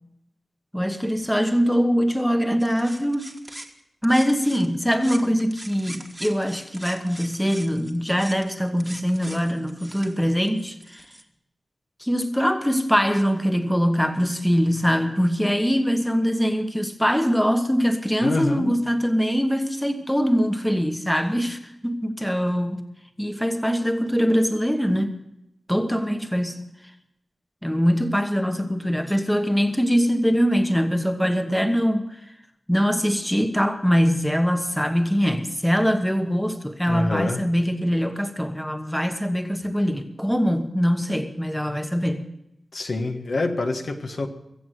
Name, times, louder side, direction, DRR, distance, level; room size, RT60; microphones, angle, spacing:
voice 1, 0.7-3.3 4.0-11.0 12.0-22.8 23.2-25.2 25.7-26.6 27.6-32.1 32.7-42.3, equal, 5° left, 7 dB, 1.2 m, -23 dB
sound 1, 2.6-4.7 4.9-11.2, right 1 dB, 15° right, 1.4 m, -42 dB
voice 2, 18.2-18.8 36.8-37.4 42.7-44.3, left 2 dB, 65° left, 5 dB, 1.4 m, -26 dB
22.5 x 7.9 x 6.4 m, 0.84 s
wide cardioid pair, 80°, 0 cm